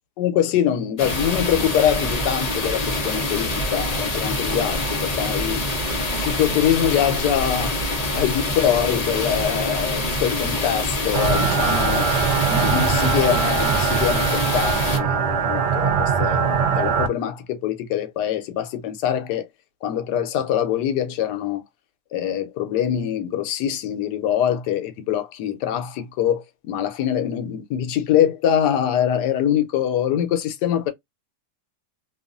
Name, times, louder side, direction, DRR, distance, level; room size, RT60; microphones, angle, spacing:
voice 1, 0.2-5.6 6.1-7.8 8.1-19.5 19.8-21.6 22.1-30.9, left 10 dB, 85° left, 1.2 m, -24 dB
sound 1, 1.0-15.0, left 1 dB, 45° left, 0.5 m, -25 dB
sound 2, 11.1-17.1, right 6 dB, 70° right, 0.6 m, -22 dB
2.8 x 2.4 x 2.4 m
omnidirectional pair, 1.8 m